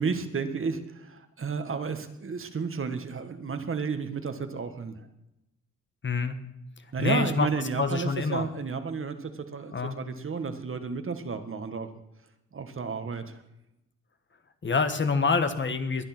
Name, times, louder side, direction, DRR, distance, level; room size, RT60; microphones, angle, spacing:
voice 1, 0.0-5.0 6.9-11.9 12.5-13.4, right 5 dB, 45° right, 8 dB, 1.7 m, -32 dB
voice 2, 6.0-6.4 7.0-7.5 7.8-8.5 9.7-10.0 14.6-16.0, left 4 dB, 40° left, 9 dB, 1.5 m, -26 dB
21.0 x 9.8 x 6.1 m, 0.90 s
cardioid pair, 90°, 29 cm